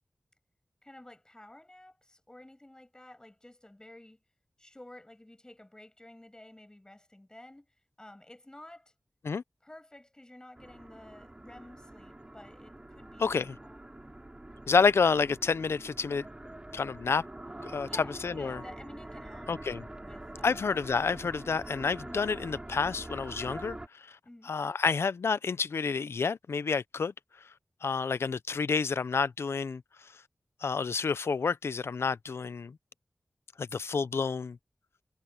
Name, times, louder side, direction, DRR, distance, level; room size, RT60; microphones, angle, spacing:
voice 1, 0.8-4.2 4.6-8.9 9.6-13.8 17.8-19.5 20.0-20.7 22.0-22.3 24.2-24.5, left 1 dB, 15° left, 7.9 m, -52 dB
sound 1, 10.6-23.9, right 1 dB, 20° right, 5.5 m, -45 dB
voice 2, 13.2-13.5 14.7-16.2 16.7-17.2 17.6-17.9 18.2-18.6 19.5-19.8 20.4-24.1 24.5-27.1 27.8-29.8 30.6-32.8 33.6-34.6, left 5 dB, 85° left, 0.6 m, -29 dB
wide cardioid pair, 95°, 4 cm